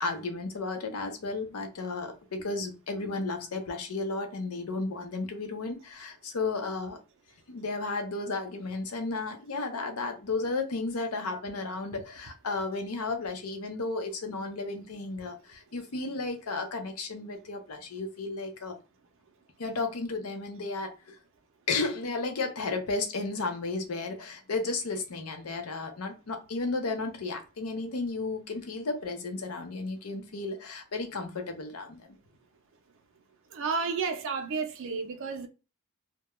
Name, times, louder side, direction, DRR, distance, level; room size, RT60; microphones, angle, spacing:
voice 1, 0.0-7.0 7.5-18.8 19.6-21.2 21.7-32.2, left 3 dB, 75° left, 0.6 m, -33 dB
voice 2, 33.5-35.5, right 5 dB, 60° right, 0.5 m, -31 dB
2.3 x 2.2 x 2.9 m
head